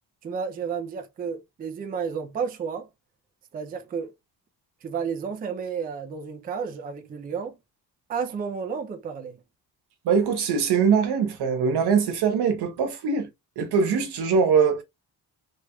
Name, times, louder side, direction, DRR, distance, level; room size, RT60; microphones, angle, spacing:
voice 1, 0.2-2.9 3.5-4.1 4.8-7.6 8.1-9.4, right 6 dB, 25° right, 0.4 m, -31 dB
voice 2, 10.0-13.3 13.6-14.8, right 6 dB, 80° right, 1.0 m, -22 dB
3.1 x 3.0 x 2.2 m
cardioid pair, 170°, 39 cm